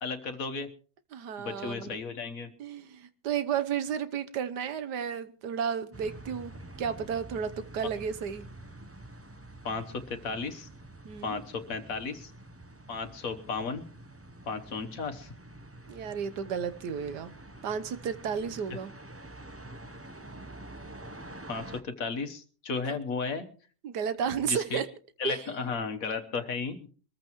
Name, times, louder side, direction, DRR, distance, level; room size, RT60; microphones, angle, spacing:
voice 1, 0.0-0.7 1.4-2.5 9.6-10.7 11.2-12.3 12.9-13.8 14.4-15.3 21.5-23.5 24.4-24.8 25.2-26.9, left 4 dB, 55° left, 1.5 m, -34 dB
voice 2, 1.1-2.0 2.6-6.5 6.8-8.4 11.0-11.4 15.9-17.3 17.6-18.9 22.8-23.0 23.8-24.9 25.2-25.4, right 7 dB, 80° right, 1.6 m, -32 dB
sound 1, 5.9-21.8, right 1 dB, 20° right, 0.4 m, -47 dB
23.5 x 14.0 x 3.1 m
omnidirectional pair, 1.8 m